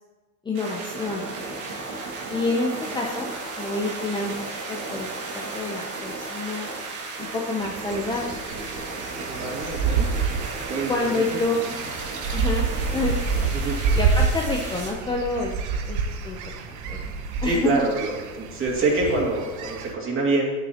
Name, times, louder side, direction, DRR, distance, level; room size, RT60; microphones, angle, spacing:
voice 1, 0.4-1.3 2.3-4.3 4.7-5.1 5.3-6.7 7.2-8.4 10.9-11.8 12.3-12.6 12.9-13.5 13.9-15.5 15.9-16.0 16.2-16.4 16.7-17.0 17.4-17.8, left 2 dB, 10° left, -1 dB, 0.6 m, -28 dB
sound 1, 0.5-14.9, right 3 dB, 90° right, 2.4 m, -34 dB
bird flock, 7.6-19.9, right 5 dB, 45° right, 0.9 m, -28 dB
voice 2, 9.3-10.1 10.7-11.4 13.5-13.8 17.4-20.5, right 2 dB, 30° right, -2 dB, 2.2 m, -26 dB
9.1 x 9.0 x 2.9 m, 1.2 s
supercardioid pair, 125°, 41 cm